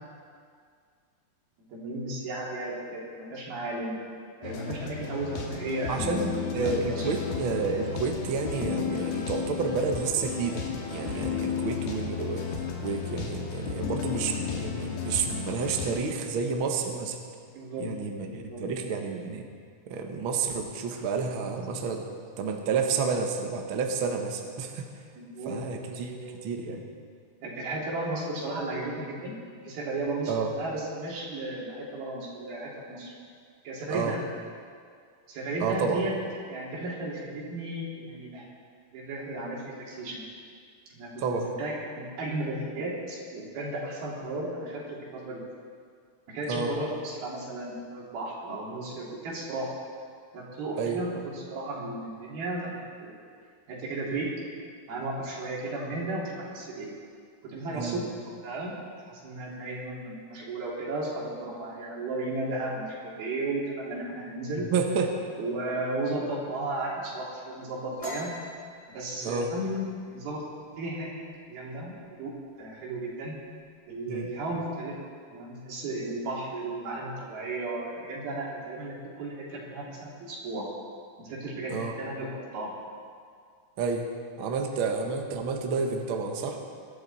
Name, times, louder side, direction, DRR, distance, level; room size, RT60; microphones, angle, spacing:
voice 1, 1.7-4.0 4.4-7.1 17.5-17.9 18.2-18.6 25.2-26.4 27.4-33.1 33.6-34.2 35.3-36.1 36.5-38.5 38.9-40.2 40.9-45.4 46.3-49.8 50.3-52.7 53.0-53.3 53.7-54.3 54.9-56.9 57.4-58.8 59.1-64.7 65.4-68.3 68.9-70.4 70.7-71.1 71.5-72.3 72.6-73.4 73.9-75.0 75.3-80.7 81.2-82.7, right 2 dB, 85° right, -4 dB, 4.7 m, -34 dB
sound 1, 4.4-16.0, left 7 dB, 80° left, 3.4 m, -33 dB
voice 2, 5.9-12.4 12.8-17.2 17.8-19.4 19.9-22.1 22.4-24.9 25.4-26.8 30.3-30.5 33.9-34.2 35.6-36.0 41.2-41.5 46.5-46.7 50.8-51.0 57.7-58.0 64.7-65.2 69.2-69.5 74.1-74.3 81.7-81.9 83.8-84.0 84.4-86.6, right 5 dB, 65° right, 3 dB, 1.3 m, -30 dB
sound 2, 68.0-71.4 71.8-72.1 72.5-73.0 73.3-74.0, equal, 20° left, 2.9 m, -42 dB
22.5 x 12.5 x 4.1 m, 2.1 s
omnidirectional pair, 4.2 m